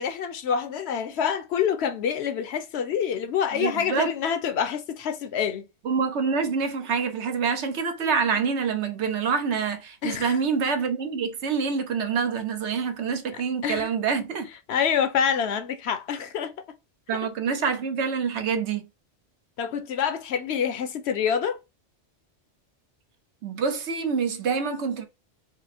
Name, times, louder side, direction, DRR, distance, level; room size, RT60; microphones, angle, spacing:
voice 1, 0.0-5.6 10.0-10.4 13.6-13.9 14.7-16.5 19.6-21.6, left 7 dB, 70° left, 0.9 m, -26 dB
voice 2, 3.5-4.1 5.8-14.5 17.1-18.9 23.4-25.0, right 5 dB, 75° right, 1.1 m, -26 dB
4.8 x 2.0 x 4.1 m
omnidirectional pair, 1.2 m